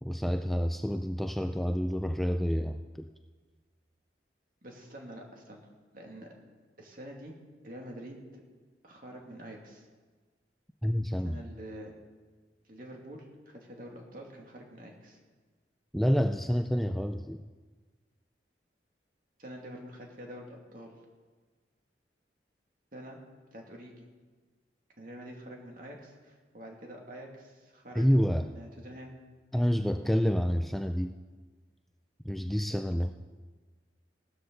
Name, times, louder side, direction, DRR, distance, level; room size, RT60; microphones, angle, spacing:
voice 1, 0.0-3.1 10.8-11.4 15.9-17.4 27.9-28.5 29.5-31.1 32.2-33.1, equal, ahead, 6 dB, 0.3 m, -28 dB
voice 2, 4.6-5.7 5.9-6.4 6.8-7.3 7.6-8.4 8.8-9.9 11.2-11.9 12.6-15.2 19.4-21.0 22.9-23.2 23.5-24.1 25.0-29.1, right 1 dB, 50° right, 0 dB, 2.3 m, -46 dB
16.5 x 13.0 x 3.9 m, 1.4 s
head